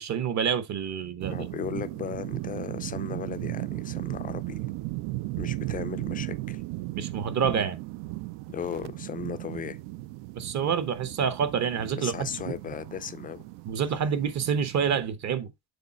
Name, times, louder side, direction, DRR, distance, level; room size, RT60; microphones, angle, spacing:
voice 1, 0.0-1.4 7.0-7.8 10.3-12.1 13.7-15.5, right 7 dB, 40° right, 0.9 m, -27 dB
sound 1, 1.2-15.0, right 19 dB, 70° right, 0.5 m, -36 dB
voice 2, 1.3-4.6 5.4-6.6 8.5-9.8 12.0-13.5, left 8 dB, 20° left, 0.3 m, -36 dB
6.8 x 4.0 x 4.1 m
cardioid pair, 150°, 44 cm